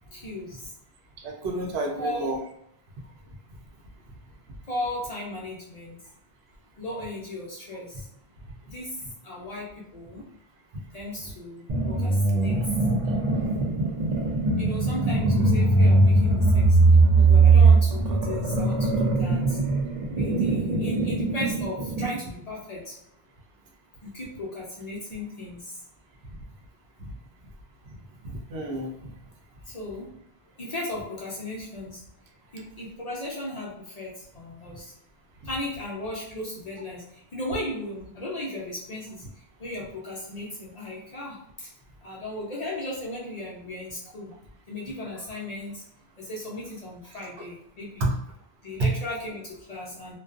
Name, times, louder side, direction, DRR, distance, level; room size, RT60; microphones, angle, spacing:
voice 1, 0.1-0.6 2.0-2.3 4.7-6.0 6.8-7.9 8.7-8.9 9.2-10.2 10.9-12.6 14.6-16.8 17.2-19.6 20.2-23.0 24.0-25.7 29.7-30.1 30.6-32.0 32.5-34.9 35.4-37.0 37.3-39.2 39.6-41.7 42.0-44.3 44.7-45.8 46.2-48.1 48.6-50.2, left 1 dB, 50° left, -4 dB, 0.6 m, -36 dB
voice 2, 1.2-2.4 28.3-28.9 48.0-48.1 48.8-48.9, right 2 dB, 80° right, 1 dB, 0.8 m, -28 dB
sound 1, 11.7-22.2, right 3 dB, 50° right, 0.6 m, -20 dB
2.4 x 2.2 x 2.4 m, 0.75 s
omnidirectional pair, 1.1 m